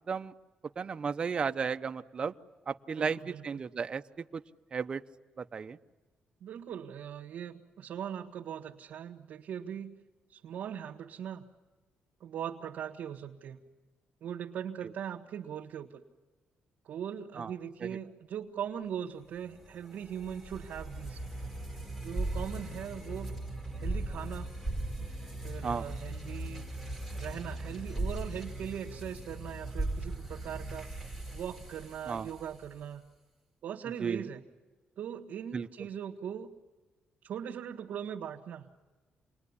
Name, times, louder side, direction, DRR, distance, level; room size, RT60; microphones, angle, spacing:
voice 1, 0.8-2.3 2.7-4.4 4.7-5.0 5.4-5.8 17.4-17.5 17.8-17.9 25.6-25.9 32.1-32.3 34.0-34.3 35.5-35.7, right 5 dB, 30° right, 10 dB, 0.8 m, -34 dB
voice 2, 3.0-3.6 6.4-10.0 10.3-11.4 12.2-13.6 14.2-16.0 16.8-21.2 22.0-23.3 23.8-24.5 25.4-26.7 27.1-30.9 31.3-33.0 33.6-34.4 35.0-36.5 37.2-38.6, right 9 dB, 65° right, -3 dB, 1.7 m, -40 dB
sound 1, 19.4-32.8, right 2 dB, 10° left, 5.3 m, -38 dB
28.5 x 21.0 x 9.9 m, 1.3 s
cardioid pair, 145°, 3 cm